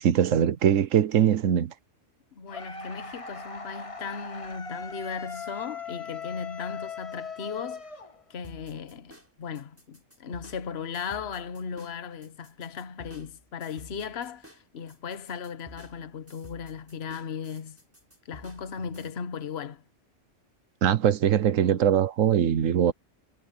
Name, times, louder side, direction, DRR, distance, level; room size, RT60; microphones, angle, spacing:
voice 1, 0.0-1.7 20.8-22.9, right 9 dB, 85° right, 1.2 m, -22 dB
voice 2, 2.3-7.9 8.3-17.8 18.2-19.8, left 6 dB, 55° left, 1.3 m, -37 dB
sound 1, 2.5-8.6, left 5 dB, 25° left, 1.5 m, -39 dB
sound 2, 8.4-19.1, equal, 10° right, 7.9 m, -52 dB
omnidirectional pair, 1.3 m